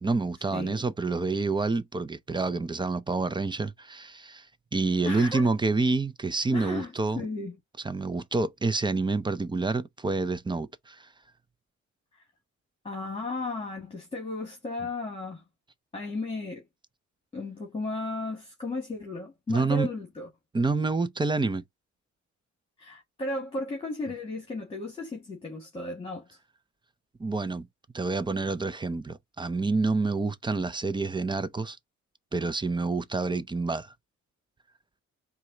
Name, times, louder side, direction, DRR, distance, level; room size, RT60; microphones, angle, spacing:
voice 1, 0.0-4.5 4.7-7.2 7.8-11.1 19.5-19.9 20.5-21.6 27.2-27.7 27.9-31.8 32.3-33.9, right 3 dB, 15° right, 0.5 m, -28 dB
voice 2, 0.5-0.8 5.0-5.5 6.5-7.6 12.8-15.4 15.9-16.6 17.3-20.3 22.8-26.3, left 2 dB, 20° left, 1.6 m, -35 dB
4.5 x 2.3 x 3.8 m
cardioid pair, 90°, 30 cm